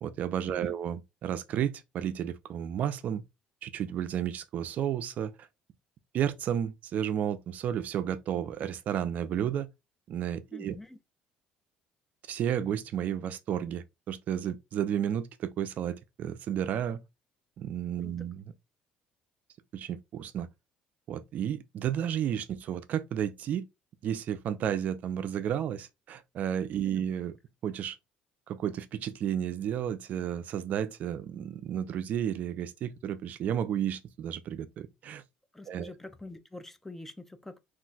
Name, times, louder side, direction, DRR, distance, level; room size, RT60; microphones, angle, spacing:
voice 1, 0.0-3.2 3.6-5.5 6.1-9.7 10.1-10.8 12.3-17.0 17.6-18.4 19.7-20.5 21.1-23.7 24.0-27.3 27.6-28.0 28.5-35.2 35.7-35.9, right 9 dB, 55° right, 0.4 m, -32 dB
voice 2, 10.5-11.0 18.0-18.2 26.8-27.0 35.5-37.6, left 2 dB, 10° left, 0.4 m, -46 dB
2.4 x 2.2 x 3.9 m
cardioid pair, 100°, 3 cm